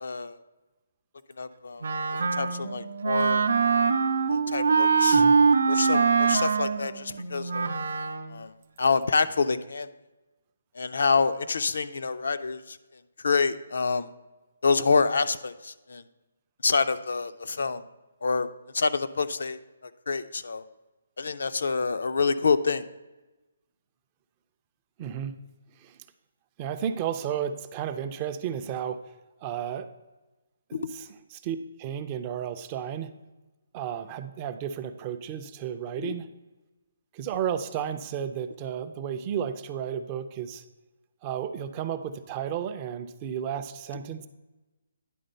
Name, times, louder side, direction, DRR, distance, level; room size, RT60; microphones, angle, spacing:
voice 1, 0.0-0.4 1.4-1.8 2.3-3.5 4.3-5.2 5.7-7.7 8.3-8.5 8.8-9.9 10.8-12.8 13.2-14.1 14.6-16.0 16.6-17.8 18.2-18.5 18.7-20.6 21.2-22.9 30.7-30.8 36.0-36.1, left 4 dB, 75° left, 11 dB, 0.5 m, -27 dB
Wind instrument woodwind instrument, 1.8-8.4, right 5 dB, 75° right, 0.5 m, -23 dB
voice 2, 25.0-25.4 25.8-25.9 26.6-29.0 29.4-29.9 30.7-31.1 31.4-33.1 33.7-36.3 37.1-40.6 41.2-44.3, right 9 dB, 20° right, 9 dB, 0.4 m, -33 dB
10.0 x 3.7 x 5.3 m, 1.1 s
hypercardioid pair, 165°, 0 cm